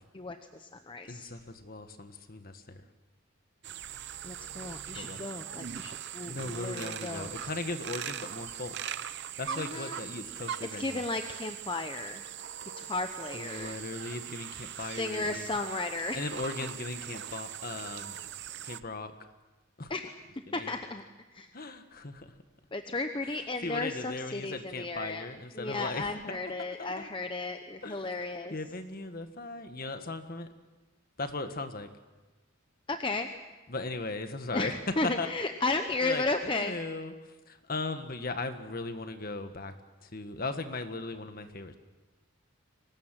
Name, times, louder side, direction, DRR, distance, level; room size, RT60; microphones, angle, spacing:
voice 1, 0.1-1.3 4.2-7.3 9.5-10.0 10.7-12.2 12.8-13.8 15.0-16.2 19.9-20.1 20.5-21.0 21.3-21.5 22.7-25.2 25.5-28.5 32.9-33.3 34.5-36.7, left 2 dB, 25° left, 6 dB, 0.9 m, -34 dB
voice 2, 1.1-2.9 4.9-5.2 6.2-8.8 9.4-11.0 13.3-15.4 16.1-18.2 18.6-19.1 19.8-19.9 20.5-20.7 21.5-22.3 23.6-27.1 27.8-28.1 28.5-30.5 31.2-31.9 33.7-34.7 35.2-35.3 36.0-37.1 37.5-39.7 40.0-41.8, left 3 dB, 45° left, 8 dB, 1.6 m, -38 dB
sound 1, 3.6-18.8, right 9 dB, 55° right, 0.7 m, -41 dB
24.0 x 19.5 x 7.6 m, 1.2 s
head